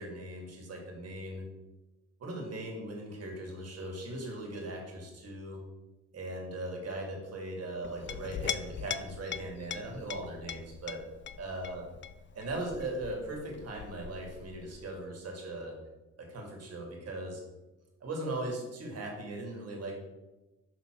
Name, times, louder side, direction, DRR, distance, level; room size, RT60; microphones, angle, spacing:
voice 1, 0.0-1.4 2.2-5.6 6.1-11.0 11.4-11.8 12.3-15.8 16.2-17.4 18.0-19.9, right 1 dB, 55° right, 1 dB, 2.2 m, -39 dB
Chink clink, 7.8-14.9, left 8 dB, 40° left, 0.4 m, -42 dB
5.7 x 4.1 x 6.1 m, 1.1 s
cardioid pair, 90°, 30 cm